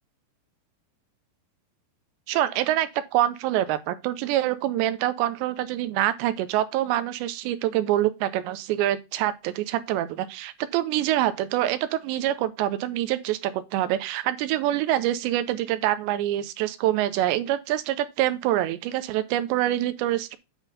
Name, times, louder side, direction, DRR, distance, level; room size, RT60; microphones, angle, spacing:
voice 1, 2.3-20.4, right 13 dB, 85° right, 3.0 m, -25 dB
9.3 x 4.1 x 5.4 m
omnidirectional pair, 4.9 m